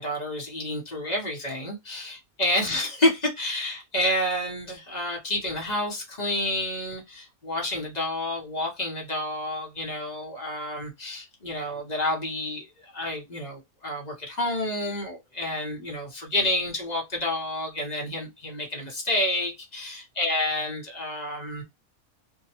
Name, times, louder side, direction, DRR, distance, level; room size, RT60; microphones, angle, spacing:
voice 1, 0.0-21.6, left 1 dB, 35° left, 0.9 m, -29 dB
2.8 x 2.2 x 2.8 m
omnidirectional pair, 1.5 m